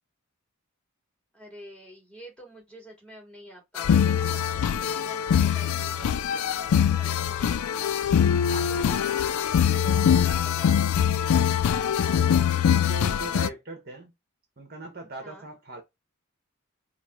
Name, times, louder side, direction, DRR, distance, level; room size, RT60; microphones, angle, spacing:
voice 1, 1.3-7.8 8.6-9.6 10.2-10.9 15.2-15.5, right 1 dB, 5° left, 2.5 m, -48 dB
sound 1, 3.8-13.5, left 8 dB, 80° left, 0.3 m, -23 dB
voice 2, 8.5-9.1 10.3-10.8 11.9-14.1 14.6-15.8, right 3 dB, 45° right, 1.0 m, -41 dB
4.7 x 2.1 x 3.5 m
head